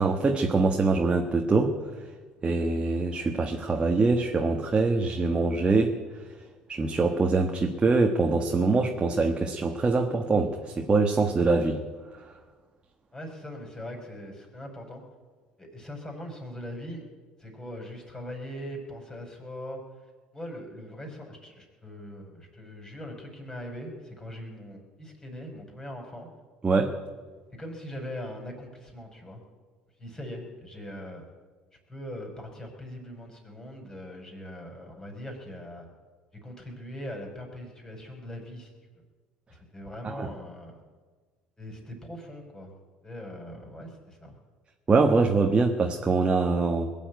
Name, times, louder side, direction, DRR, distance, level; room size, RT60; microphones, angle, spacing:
voice 1, 0.0-1.8 2.4-6.0 6.7-11.8 26.6-26.9 40.0-40.3 44.9-47.0, right 3 dB, 25° right, 2 dB, 1.4 m, -24 dB
voice 2, 13.1-15.0 15.6-17.0 17.4-19.8 20.3-26.3 27.6-29.4 30.0-31.2 31.9-35.9 36.4-38.7 39.5-40.8 41.6-42.7 43.0-44.3, equal, 15° left, 2 dB, 5.1 m, -41 dB
21.0 x 7.3 x 9.3 m, 1.4 s
hypercardioid pair, 70°, 4 cm